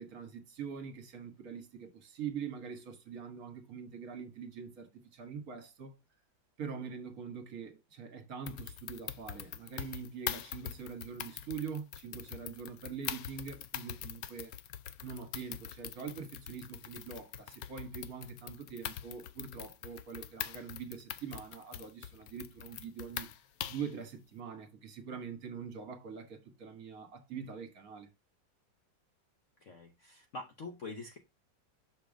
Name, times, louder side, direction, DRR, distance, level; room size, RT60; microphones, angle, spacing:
voice 1, 0.0-5.9 6.6-14.5 15.0-23.3 23.7-28.1, right 6 dB, 50° right, 1.7 m, -44 dB
sound 1, 8.5-23.9, left 11 dB, 85° left, 0.7 m, -43 dB
voice 2, 29.6-31.2, left 3 dB, 55° left, 0.9 m, -45 dB
6.4 x 3.4 x 5.0 m
omnidirectional pair, 2.1 m